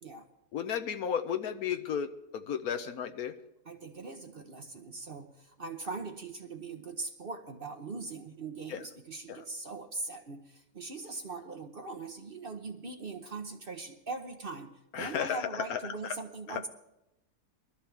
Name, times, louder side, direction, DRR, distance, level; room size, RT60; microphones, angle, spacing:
voice 1, 0.5-3.4 8.7-8.8 9.3-9.4 14.9-15.8 16.5-16.6, left 8 dB, 70° left, 8 dB, 1.3 m, -33 dB
voice 2, 3.6-14.7 15.0-16.7, right 3 dB, 45° right, 5 dB, 0.9 m, -41 dB
21.5 x 13.0 x 3.4 m, 0.89 s
omnidirectional pair, 1.6 m